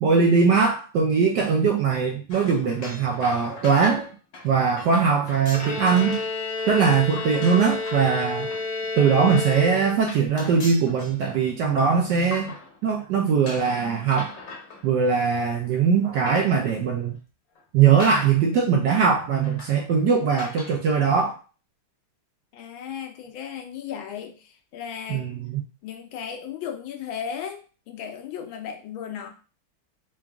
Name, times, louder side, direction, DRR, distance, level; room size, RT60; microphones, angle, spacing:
voice 1, 0.0-4.1 4.4-6.2 6.7-8.5 9.0-12.5 12.8-14.3 14.8-17.1 17.7-21.4 25.1-25.6, right 6 dB, 75° right, 1 dB, 1.0 m, -21 dB
sound 1, 2.3-6.3 6.6-13.0 13.4-15.5 15.9-16.9 17.5-17.6 18.0-18.6 18.9-19.0 19.4-19.9 20.3-20.8, left 3 dB, 55° left, 1.2 m, -41 dB
Bowed string instrument, 5.5-10.2, left 3 dB, 30° left, 0.5 m, -30 dB
voice 2, 22.5-25.3 25.8-29.3, left 8 dB, 75° left, 5 dB, 1.3 m, -35 dB
3.9 x 2.4 x 3.4 m, 0.35 s
omnidirectional pair, 2.3 m